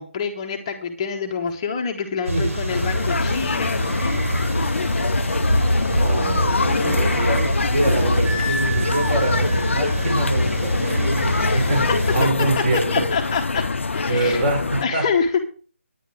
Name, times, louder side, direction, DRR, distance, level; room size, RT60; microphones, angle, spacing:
voice 1, 0.0-4.2 6.6-7.3 11.5-11.7 12.9-13.6 13.9-14.4 14.8-15.4, left 5 dB, 20° left, 4 dB, 1.0 m, -27 dB
sound 1, 2.2-12.2, equal, 80° right, 4.7 m, -24 dB
sound 2, 2.7-14.8, left 4 dB, 60° left, 0.5 m, -25 dB
voice 2, 6.0-13.0 14.1-15.1, right 2 dB, 40° right, 0 dB, 6.3 m, -25 dB
Wind instrument woodwind instrument, 8.2-10.2, left 1 dB, 10° right, 3.8 m, -31 dB
10.0 x 10.0 x 4.7 m, 0.39 s
figure-of-eight pair, 155°, 7 cm